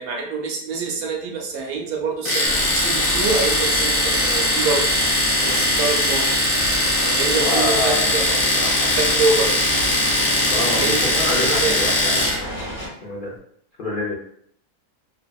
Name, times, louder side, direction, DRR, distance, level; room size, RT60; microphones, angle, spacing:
voice 1, 0.0-4.9 5.4-6.4 7.0-8.4 9.0-9.5 10.7-11.7, right 4 dB, 70° right, 0 dB, 1.0 m, -25 dB
Domestic sounds home sounds, 2.3-12.4, left 1 dB, 55° left, 0.9 m, -20 dB
sound 1, 2.5-12.9, equal, 20° left, 1.1 m, -32 dB
voice 2, 7.3-8.2 8.5-9.1 10.5-13.3 13.8-14.2, left 1 dB, 85° left, -6 dB, 0.4 m, -27 dB
2.7 x 2.4 x 2.2 m, 0.66 s
omnidirectional pair, 1.7 m